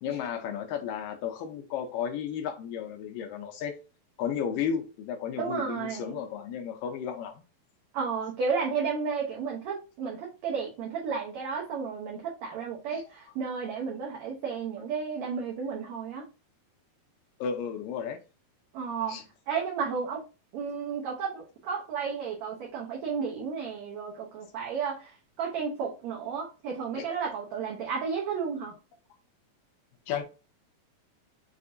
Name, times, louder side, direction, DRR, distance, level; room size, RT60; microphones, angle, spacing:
voice 1, 0.0-3.8 4.2-7.4 12.9-13.0 17.4-18.2 19.1-19.2 26.9-27.1 30.1-30.2, left 8 dB, 75° left, 2.1 m, -33 dB
voice 2, 5.4-6.2 7.9-16.2 18.7-19.2 19.5-20.2 20.5-28.7, right 6 dB, 75° right, 1.6 m, -33 dB
6.5 x 2.6 x 2.5 m
omnidirectional pair, 4.3 m